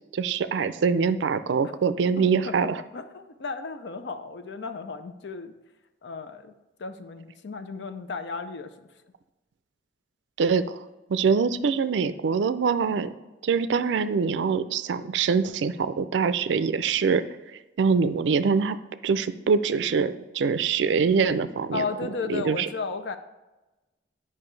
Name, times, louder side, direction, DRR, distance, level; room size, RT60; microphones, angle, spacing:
voice 1, 0.1-2.8 10.4-10.8 11.1-13.1 13.4-17.2 17.8-18.8 19.0-21.8 22.3-22.7, right 5 dB, 80° right, 13 dB, 0.4 m, -24 dB
voice 2, 2.2-2.5 2.9-5.5 6.0-6.5 6.8-8.7 21.7-23.2, left 4 dB, 70° left, 9 dB, 0.5 m, -34 dB
8.9 x 5.4 x 3.2 m, 1.1 s
head